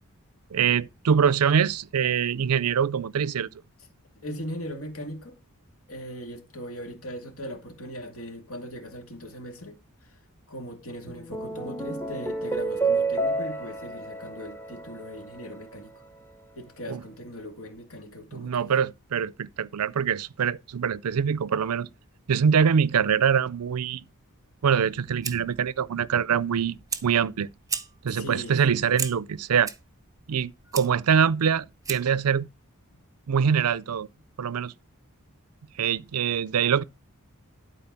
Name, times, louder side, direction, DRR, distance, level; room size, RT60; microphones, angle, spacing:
voice 1, 0.5-3.5 16.9-17.0 18.3-21.9 22.3-24.0 24.6-27.5 28.0-29.7 30.3-32.5 33.3-34.1 34.4-34.7 35.8-36.8, right 7 dB, 80° right, 0.5 m, -24 dB
voice 2, 4.2-5.4 5.9-9.8 10.5-15.9 16.6-18.7 28.1-28.8 32.9-33.0, equal, 70° left, 2.4 m, -39 dB
sound 1, 11.1-15.6, right 3 dB, 10° left, 1.0 m, -30 dB
Fire, 24.8-32.3, right 6 dB, 15° right, 0.8 m, -38 dB
12.0 x 4.5 x 5.9 m
head